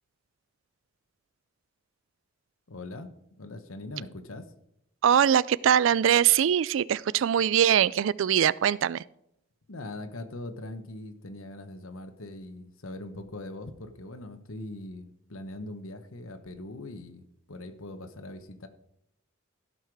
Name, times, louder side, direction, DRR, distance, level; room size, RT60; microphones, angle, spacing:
voice 1, 2.7-3.1 3.4-4.5 9.7-18.7, left 2 dB, 80° left, 9 dB, 1.1 m, -41 dB
voice 2, 5.0-9.0, right 9 dB, 65° right, 20 dB, 0.3 m, -22 dB
16.0 x 5.8 x 4.7 m, 0.78 s
head